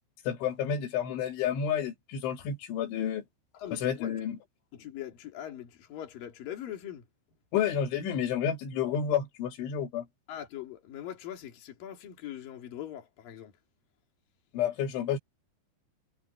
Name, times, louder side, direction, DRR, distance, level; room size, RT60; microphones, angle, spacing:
voice 1, 0.3-3.2 3.7-4.4 7.5-10.0 14.5-15.2, left 8 dB, 90° left, 4.9 m, -30 dB
voice 2, 3.5-4.2 4.7-7.0 10.3-13.5, left 11 dB, 55° left, 4.3 m, -41 dB
omnidirectional pair, 5.3 m